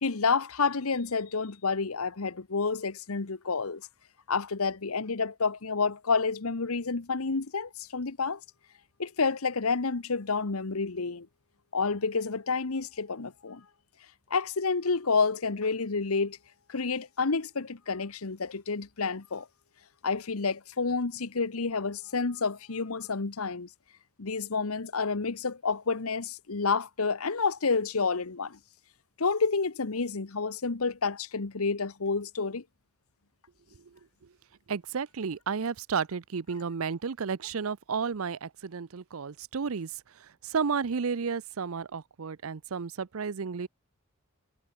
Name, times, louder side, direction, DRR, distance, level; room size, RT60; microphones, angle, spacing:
voice 1, 0.0-3.8 4.3-8.4 9.0-11.3 11.7-13.6 14.3-16.4 16.7-19.5 20.0-23.7 24.2-28.6 29.2-32.6, left 4 dB, 80° left, 1.1 m, -29 dB
voice 2, 34.7-43.7, right 5 dB, 70° right, 0.6 m, -32 dB
head